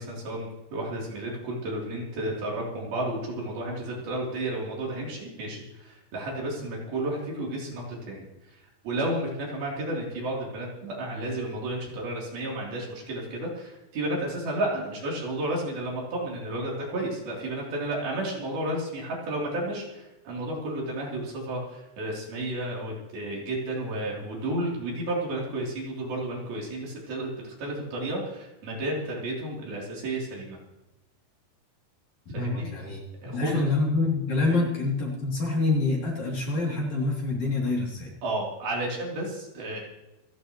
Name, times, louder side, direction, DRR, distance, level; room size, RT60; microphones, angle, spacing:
voice 1, 0.0-8.6 8.8-30.6 32.3-32.7 33.2-33.7 34.5-34.7 38.2-39.8, right 1 dB, 60° right, -3 dB, 5.2 m, -32 dB
voice 2, 32.3-38.1, left 3 dB, 45° left, -3 dB, 4.0 m, -26 dB
27.5 x 10.5 x 3.1 m, 0.97 s
omnidirectional pair, 4.9 m